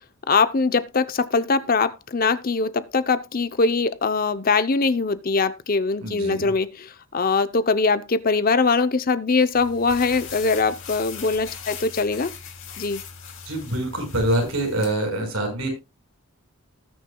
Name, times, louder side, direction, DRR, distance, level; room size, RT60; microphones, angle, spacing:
voice 1, 0.3-12.3 12.8-13.0, left 4 dB, 40° left, 0.6 m, -22 dB
voice 2, 6.0-6.5 13.4-15.7, right 1 dB, 75° right, 5.0 m, -25 dB
sound 1, 9.5-14.9, left 6 dB, 60° left, 2.6 m, -39 dB
19.5 x 6.5 x 2.3 m
head